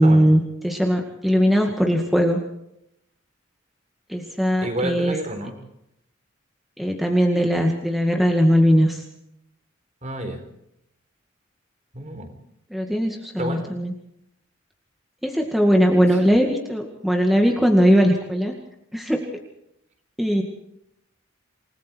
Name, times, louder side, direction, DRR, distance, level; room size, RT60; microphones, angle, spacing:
voice 1, 0.0-2.4 4.1-5.1 6.8-9.0 12.7-13.9 15.2-18.5 18.9-19.2 20.2-20.4, equal, ahead, 1 dB, 2.0 m, -19 dB
voice 2, 4.6-5.6 10.0-10.4 11.9-12.3 13.4-13.7, right 1 dB, 35° right, 6 dB, 4.1 m, -29 dB
28.5 x 20.0 x 4.6 m, 0.78 s
head